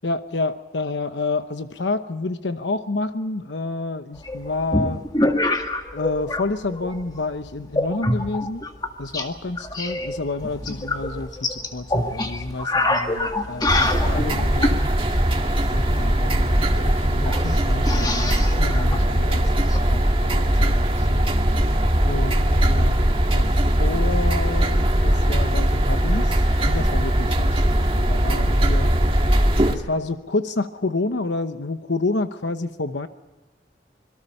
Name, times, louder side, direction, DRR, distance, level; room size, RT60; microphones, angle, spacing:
voice 1, 0.0-5.0 5.9-8.6 9.0-14.7 15.7-19.5 19.9-21.3 22.0-23.5 23.8-26.4 26.6-28.9 29.7-33.1, left 3 dB, 85° left, 9 dB, 1.0 m, -29 dB
sound 1, 4.2-6.4 6.7-7.2 7.7-9.3 9.6-14.8 16.5-16.6 16.8-16.9 17.3-19.8, left 2 dB, 20° left, 2.0 m, -25 dB
sound 2, 13.7-29.7, right 1 dB, 30° right, 1.8 m, -20 dB
26.0 x 23.0 x 5.5 m, 1.2 s
head